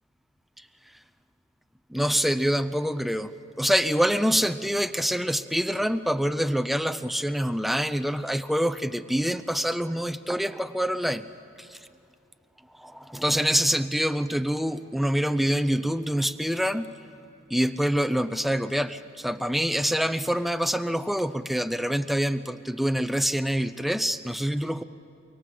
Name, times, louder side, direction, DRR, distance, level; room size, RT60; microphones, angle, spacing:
voice 1, 1.9-3.3 3.6-11.3 11.6-11.7 13.0-16.9 17.5-24.8, equal, ahead, 11 dB, 0.6 m, -26 dB
24.5 x 23.5 x 7.7 m, 2.6 s
head